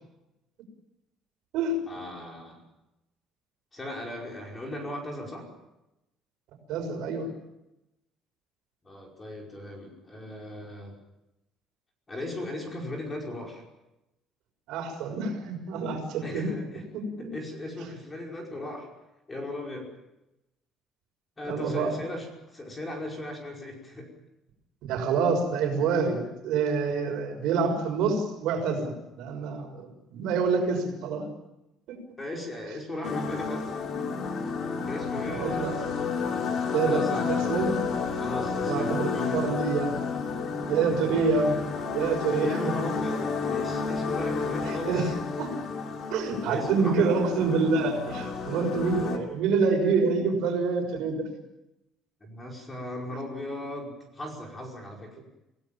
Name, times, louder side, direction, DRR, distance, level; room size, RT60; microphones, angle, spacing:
voice 1, 1.9-2.6 3.7-5.5 8.8-11.0 12.1-13.6 16.2-16.9 17.2-18.9 19.3-19.9 21.4-24.1 32.2-33.8 34.9-36.1 36.9-37.5 38.1-39.4 42.4-45.1 46.5-47.1 52.2-55.2, left 1 dB, 15° left, 0 dB, 5.2 m, -37 dB
voice 2, 6.7-7.3 14.7-16.5 16.9-17.3 21.4-22.0 24.8-31.2 31.9-32.0 35.3-35.8 36.7-37.8 38.7-39.9 40.7-41.6 41.9-42.7 44.7-45.1 45.4-45.5 46.1-51.3, right 4 dB, 65° right, 4 dB, 6.2 m, -27 dB
sound 1, 33.0-49.2, left 5 dB, 40° left, 2.8 m, -31 dB
27.5 x 17.5 x 7.2 m, 0.90 s
cardioid pair, 175°, 0 cm